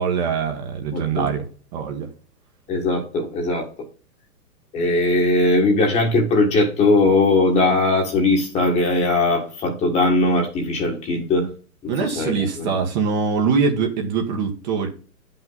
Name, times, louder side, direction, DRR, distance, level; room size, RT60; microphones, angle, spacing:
voice 1, 0.0-1.5 1.7-2.1 11.9-14.9, right 5 dB, 30° right, 3 dB, 1.5 m, -23 dB
voice 2, 0.9-1.3 2.7-3.7 4.7-11.5 11.8-12.7, left 2 dB, 15° left, 1 dB, 1.7 m, -19 dB
10.5 x 5.7 x 4.0 m, 0.38 s
hypercardioid pair, 160°, 46 cm